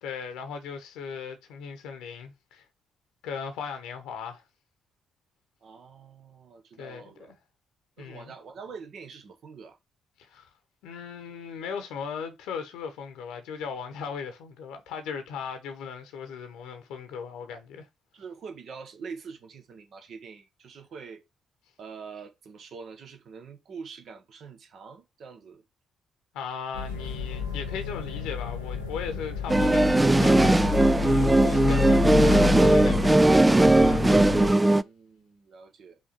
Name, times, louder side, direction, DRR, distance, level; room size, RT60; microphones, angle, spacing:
voice 1, 0.0-2.6 3.2-4.4 6.8-7.3 8.0-8.3 10.2-10.5 10.8-17.9 26.3-34.1, left 6 dB, 65° left, 1.0 m, -38 dB
voice 2, 5.6-7.3 8.0-9.8 18.1-21.2 21.8-25.6 34.8-36.0, right 5 dB, 55° right, 1.3 m, -44 dB
sound 1, 26.7-34.5, left 7 dB, 85° left, 1.4 m, -30 dB
sound 2, 29.5-34.8, right 2 dB, 15° right, 0.3 m, -19 dB
5.4 x 3.4 x 5.7 m
figure-of-eight pair, 40°, 0 cm